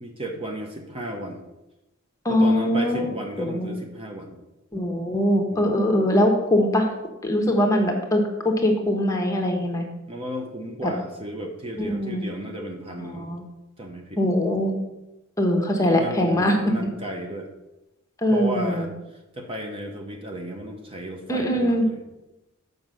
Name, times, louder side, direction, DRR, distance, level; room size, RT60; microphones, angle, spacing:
voice 1, 0.0-1.4 2.3-4.4 5.5-5.8 10.1-13.3 13.8-14.2 15.7-17.5 18.3-22.0, right 1 dB, 25° right, 2 dB, 0.8 m, -34 dB
voice 2, 2.2-3.1 3.4-3.7 4.7-6.8 7.2-9.8 10.8-10.9 11.8-12.2 13.1-13.4 14.2-14.7 15.4-16.6 16.8-16.9 18.2-18.9 21.3-21.8, left 1 dB, 15° left, 2 dB, 1.1 m, -22 dB
7.3 x 5.3 x 6.2 m, 0.97 s
head